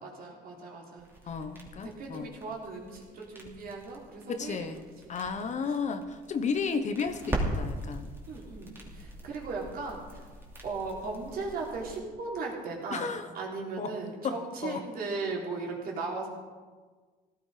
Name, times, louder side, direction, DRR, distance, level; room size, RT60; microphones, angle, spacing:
voice 1, 0.0-1.4 1.8-4.6 5.0-5.6 8.3-10.3 10.6-16.3, right 3 dB, 60° right, -2 dB, 3.8 m, -37 dB
sound 1, 1.0-12.0, right 1 dB, 15° right, 2.9 m, -40 dB
voice 2, 1.3-2.3 4.3-8.1 12.9-13.3 13.8-13.9 14.2-14.4 14.6-14.8, left 5 dB, 45° left, 9 dB, 1.2 m, -33 dB
17.0 x 12.0 x 5.1 m, 1.4 s
cardioid pair, 110°, 17 cm